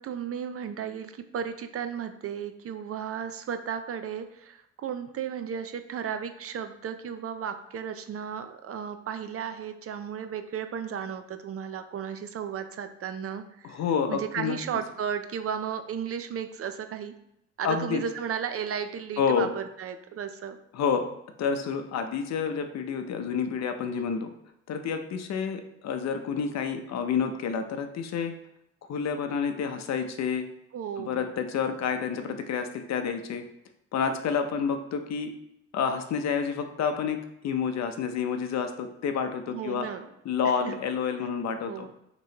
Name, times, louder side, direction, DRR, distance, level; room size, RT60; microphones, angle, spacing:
voice 1, 0.0-13.8 14.1-17.1 17.6-20.6 30.7-31.3 39.5-40.1 40.4-40.8 41.6-41.9, right 8 dB, 50° right, 9 dB, 0.5 m, -34 dB
voice 2, 13.6-14.6 17.6-18.0 19.2-19.5 20.7-21.0 21.4-24.3 24.7-28.3 28.9-30.4 31.0-33.4 33.9-35.3 35.7-37.2 37.4-39.9 40.2-41.9, left 6 dB, 60° left, 7 dB, 0.6 m, -29 dB
6.1 x 3.0 x 2.8 m, 0.81 s
cardioid pair, 90°, 30 cm